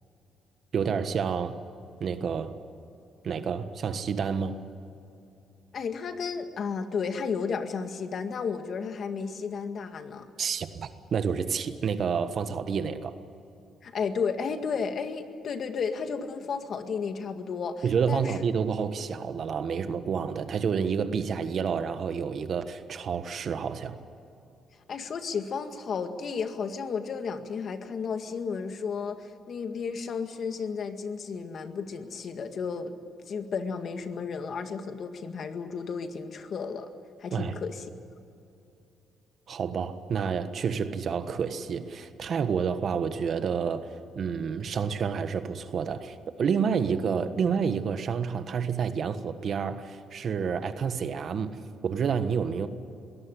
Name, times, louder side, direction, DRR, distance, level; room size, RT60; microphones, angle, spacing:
voice 1, 0.7-1.6 2.0-2.6 3.2-4.6 10.4-13.2 17.8-24.0 37.3-37.6 39.5-43.9 44.1-51.6 51.8-52.7, right 6 dB, 55° right, 10 dB, 1.4 m, -29 dB
voice 2, 5.7-10.3 13.8-18.3 24.9-32.9 33.3-36.9 37.2-37.9, left 5 dB, 55° left, 7 dB, 1.9 m, -33 dB
22.0 x 17.5 x 10.0 m, 2.8 s
cardioid pair, 90°, 0 cm